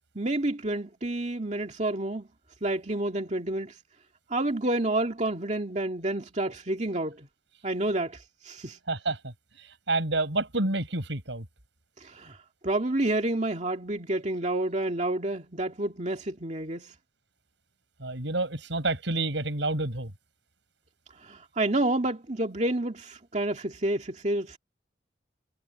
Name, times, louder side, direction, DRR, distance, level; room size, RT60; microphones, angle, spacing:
voice 1, 0.1-2.3 2.6-3.8 4.3-7.3 7.6-8.8 12.0-12.4 12.6-16.9 21.2-24.6, right 1 dB, 40° right, 2.3 m, -29 dB
voice 2, 8.9-9.3 9.9-11.4 18.0-20.1, right 2 dB, 85° right, 5.1 m, -28 dB
head